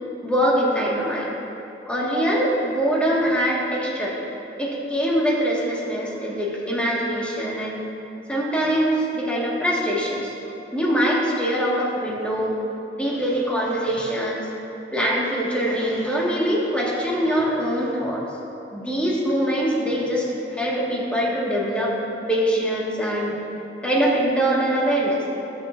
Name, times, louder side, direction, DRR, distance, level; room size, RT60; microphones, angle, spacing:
voice 1, 0.2-1.3 1.9-4.2 4.6-7.8 8.3-10.3 10.7-12.6 13.0-14.5 14.9-18.2 18.7-21.9 22.3-23.4 23.8-25.2, equal, 5° left, -5 dB, 1.7 m, -23 dB
20.0 x 6.7 x 2.5 m, 2.9 s
head